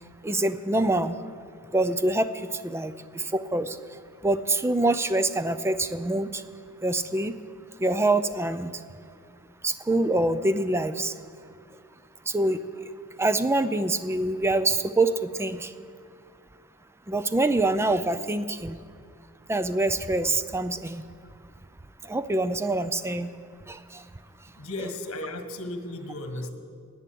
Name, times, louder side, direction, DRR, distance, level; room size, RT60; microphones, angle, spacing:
voice 1, 0.2-1.2 1.7-3.8 4.2-6.4 6.8-7.3 7.8-8.7 9.6-11.1 12.3-12.6 13.2-15.7 17.1-18.8 19.5-21.0 22.1-23.3 23.7-24.0, right 2 dB, 10° right, 12 dB, 0.4 m, -25 dB
voice 2, 24.5-26.5, left 1 dB, 80° left, 6 dB, 1.3 m, -35 dB
11.0 x 10.0 x 8.4 m, 2.2 s
head